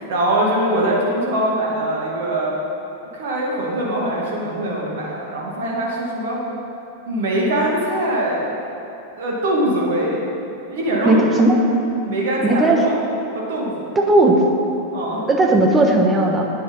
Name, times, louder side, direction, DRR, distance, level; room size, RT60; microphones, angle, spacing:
voice 1, 0.0-2.6 3.1-6.4 7.1-8.5 9.2-10.2 10.7-11.5 12.0-13.0 13.3-13.9 14.9-15.2, right 1 dB, 55° right, -3 dB, 2.2 m, -22 dB
voice 2, 11.0-11.6 12.4-12.8 13.9-14.4 15.3-16.4, right 2 dB, 15° right, 1 dB, 1.3 m, -15 dB
9.4 x 7.9 x 5.4 m, 3.0 s
figure-of-eight pair, 90°, 0 cm